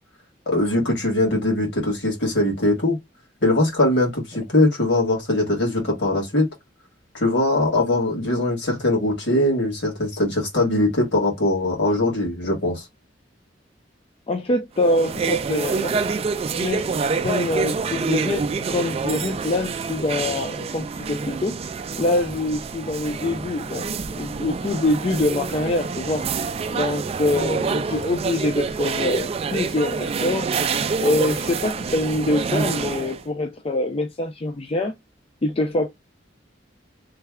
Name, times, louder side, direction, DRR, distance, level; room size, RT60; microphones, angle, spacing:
voice 1, 0.5-3.0 3.4-6.5 7.1-12.8, left 1 dB, 70° left, 1.8 m, -21 dB
voice 2, 14.3-16.0 16.5-21.6 22.0-26.3 26.7-30.5 31.0-34.9 35.4-35.9, left 2 dB, 30° left, 0.5 m, -25 dB
sound 1, 14.8-33.2, right 5 dB, 35° right, 0.3 m, -27 dB
3.3 x 2.2 x 3.5 m
head